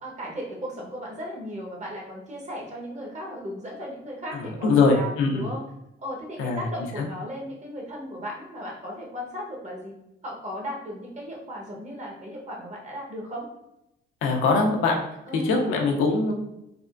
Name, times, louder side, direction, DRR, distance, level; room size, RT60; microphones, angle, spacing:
voice 1, 0.0-5.6 6.0-10.0 10.2-13.5 15.3-15.6, equal, 35° right, -1 dB, 1.0 m, -36 dB
voice 2, 4.4-5.5 6.4-6.7 7.0-7.1 14.2-15.0 15.3-16.3, left 3 dB, 90° left, 1 dB, 0.6 m, -22 dB
3.5 x 2.1 x 2.4 m, 0.85 s
cardioid pair, 90°, 20 cm